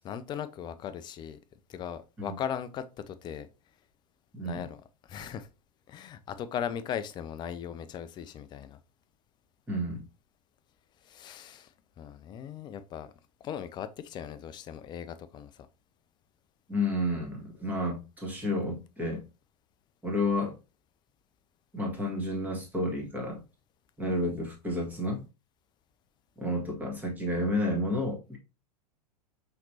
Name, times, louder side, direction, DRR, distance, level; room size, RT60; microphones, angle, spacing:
voice 1, 0.0-1.4 1.7-3.5 4.4-4.8 5.1-5.5 5.9-8.8 11.1-11.7 12.0-13.1 13.4-15.5, left 8 dB, 20° left, 0.4 m, -38 dB
voice 2, 4.3-4.6 9.7-10.0 16.7-19.2 20.0-20.5 21.7-23.4 24.0-25.2 26.4-28.4, left 1 dB, 10° right, 1.7 m, -31 dB
5.8 x 3.1 x 2.7 m
figure-of-eight pair, 100°, 20 cm